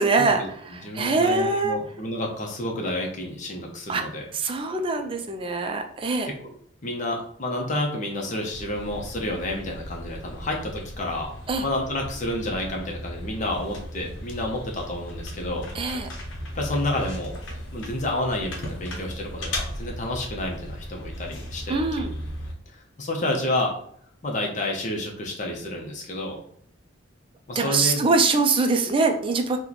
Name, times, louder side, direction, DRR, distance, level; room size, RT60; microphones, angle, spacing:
voice 1, 0.0-1.8 3.9-4.1 4.3-6.3 11.5-11.6 15.7-16.1 21.7-22.1 27.5-29.6, right 3 dB, 25° right, 5 dB, 0.4 m, -23 dB
voice 2, 0.8-4.3 6.4-6.5 6.8-11.3 11.6-15.6 16.5-17.3 17.7-21.9 23.0-23.7 24.2-26.4 27.5-28.0, left 1 dB, 40° left, 0 dB, 0.7 m, -29 dB
sound 1, 8.5-22.5, left 1 dB, 80° left, 0.8 m, -36 dB
3.0 x 2.2 x 3.9 m, 0.63 s
head